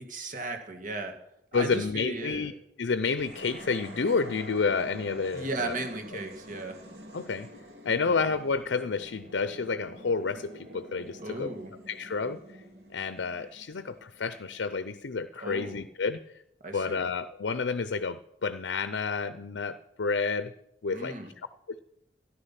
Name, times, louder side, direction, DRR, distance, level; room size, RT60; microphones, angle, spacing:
voice 1, 0.1-1.1 1.5-2.5 5.3-6.8 7.9-8.2 11.2-11.7 15.4-15.8 16.6-17.0 20.9-21.3, right 2 dB, 45° right, 4 dB, 2.0 m, -36 dB
voice 2, 1.5-2.5 2.8-5.8 7.1-7.5 7.8-11.5 11.9-12.4 12.9-16.4 16.7-20.5 20.8-21.2, left 4 dB, 90° left, 13 dB, 0.6 m, -30 dB
sound 1, 3.1-14.5, equal, 65° right, 3.2 m, -47 dB
13.5 x 11.0 x 5.8 m, 0.82 s
head